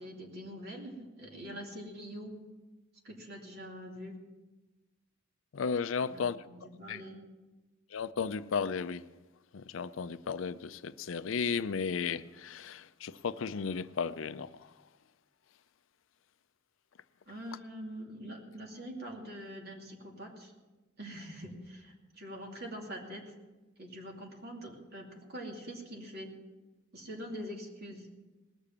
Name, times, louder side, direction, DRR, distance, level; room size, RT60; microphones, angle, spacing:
voice 1, 0.0-2.3 3.0-4.2 6.0-7.2 17.3-20.5 21.0-23.3 23.8-26.3 26.9-28.1, equal, 50° right, 2.6 m, -44 dB
voice 2, 5.5-6.4 6.9-7.0 7.9-9.0 9.5-14.5, left 6 dB, 70° left, 0.5 m, -34 dB
19.5 x 6.7 x 7.2 m
head